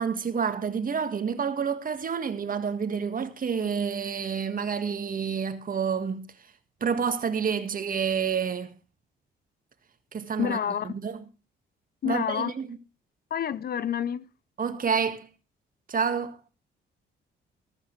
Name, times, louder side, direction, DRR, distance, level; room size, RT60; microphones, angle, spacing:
voice 1, 0.0-6.3 6.8-8.7 10.1-10.6 10.8-11.2 12.0-12.8 14.6-15.3 15.9-16.4, right 6 dB, 45° right, 1.8 m, -28 dB
voice 2, 10.4-10.9 12.0-12.5 13.3-14.2, left 9 dB, 50° left, 0.7 m, -28 dB
14.5 x 14.0 x 3.2 m
cardioid pair, 90°, 20 cm